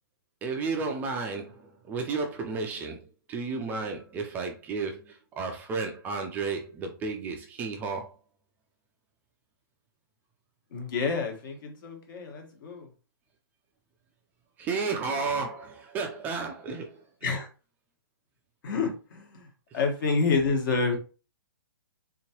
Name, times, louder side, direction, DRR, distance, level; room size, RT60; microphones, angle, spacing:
voice 1, 0.4-8.1 14.6-17.0 19.7-19.8, right 4 dB, 15° right, 0.3 m, -33 dB
voice 2, 10.7-12.9 17.2-17.5 18.6-19.5 19.7-21.0, left 4 dB, 55° left, 1.3 m, -28 dB
3.7 x 2.9 x 2.9 m
hypercardioid pair, 150°, 12 cm